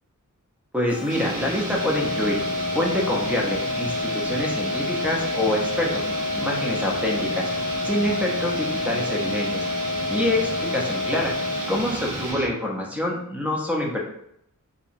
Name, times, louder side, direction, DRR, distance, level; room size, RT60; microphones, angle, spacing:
voice 1, 0.7-2.4 2.7-6.0 6.3-7.5 7.8-9.6 10.1-11.3 11.7-14.0, left 1 dB, 5° right, -2 dB, 0.6 m, -26 dB
sound 1, 0.9-12.3, right 3 dB, 55° left, 0.8 m, -39 dB
sound 2, 1.1-12.5, right 1 dB, 75° right, 0.8 m, -33 dB
sound 3, 1.6-11.6, left 3 dB, 55° right, 0.9 m, -29 dB
2.8 x 2.2 x 2.5 m, 0.73 s
wide cardioid pair, 100°, 31 cm